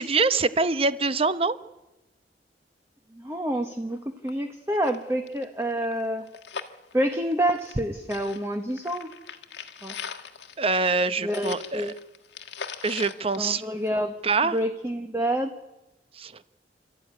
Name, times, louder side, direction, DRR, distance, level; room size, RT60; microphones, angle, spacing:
voice 1, 0.0-1.6 10.6-11.9 12.8-13.6 14.2-14.6 16.2-16.3, right 4 dB, 35° right, 14 dB, 0.8 m, -24 dB
voice 2, 3.1-6.3 6.9-9.1 9.8-9.9 11.2-11.9 13.4-14.1 14.4-15.5, equal, 15° right, 5 dB, 1.2 m, -28 dB
sound 1, 3.9-4.0 4.3-4.4 4.7-7.8 8.1-14.2 14.6-14.7, left 6 dB, 85° left, 1.6 m, -41 dB
29.0 x 13.0 x 9.7 m, 1.0 s
head